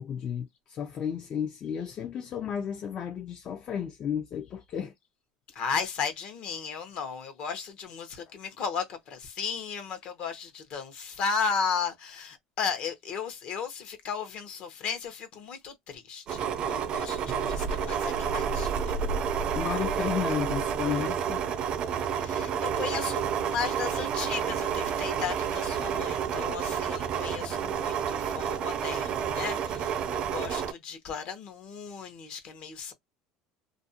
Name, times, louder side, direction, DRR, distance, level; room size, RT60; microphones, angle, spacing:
voice 1, 0.0-4.9 19.6-21.4, left 8 dB, 40° left, 0.4 m, -33 dB
voice 2, 5.5-18.9 22.1-32.9, left 6 dB, 55° left, 0.8 m, -35 dB
sound 1, 16.3-30.7, right 7 dB, 45° right, 0.4 m, -30 dB
2.5 x 2.1 x 2.7 m
supercardioid pair, 115°, 2 cm